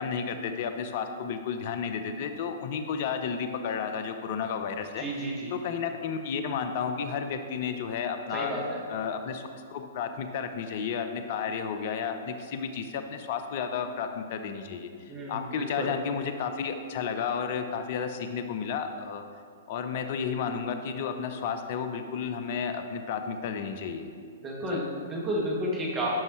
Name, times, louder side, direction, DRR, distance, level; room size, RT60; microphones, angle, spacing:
voice 1, 0.0-5.0 5.5-8.5 8.9-9.4 9.7-19.2 19.7-24.1 24.7-24.8, left 6 dB, 50° left, 7 dB, 0.7 m, -32 dB
voice 2, 5.0-5.5 8.3-8.8 15.1-15.9 24.4-26.1, right 1 dB, 25° right, -2 dB, 1.9 m, -31 dB
12.0 x 5.5 x 3.2 m, 2.3 s
hypercardioid pair, 120°, 0 cm